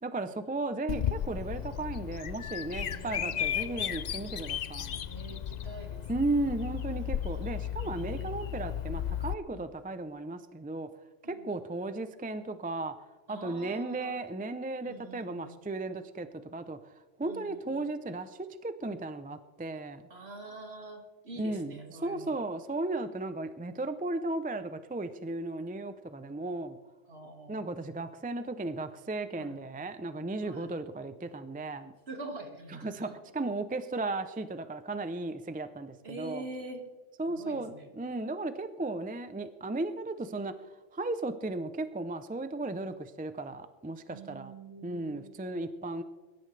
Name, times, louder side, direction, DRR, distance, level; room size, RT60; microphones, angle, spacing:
voice 1, 0.0-5.0 6.1-10.9 11.3-12.9 13.3-16.8 17.2-20.0 21.4-26.8 27.5-31.9 32.7-36.5 37.2-40.5 40.9-44.5 44.8-46.0, right 2 dB, 15° right, 10 dB, 0.3 m, -35 dB
Bird vocalization bird call bird song, 0.9-9.3, left 10 dB, 60° left, 0.4 m, -35 dB
voice 2, 2.8-3.8 5.0-6.5 7.8-8.3 9.5-9.7 11.2-11.5 13.3-14.2 14.8-15.6 17.2-17.9 20.1-22.3 27.1-27.6 29.4-29.6 30.4-30.7 32.1-33.1 36.0-36.8 37.3-37.9 44.1-45.9, right 2 dB, 60° right, 2 dB, 2.3 m, -46 dB
23.0 x 12.5 x 3.3 m, 1.3 s
omnidirectional pair, 1.2 m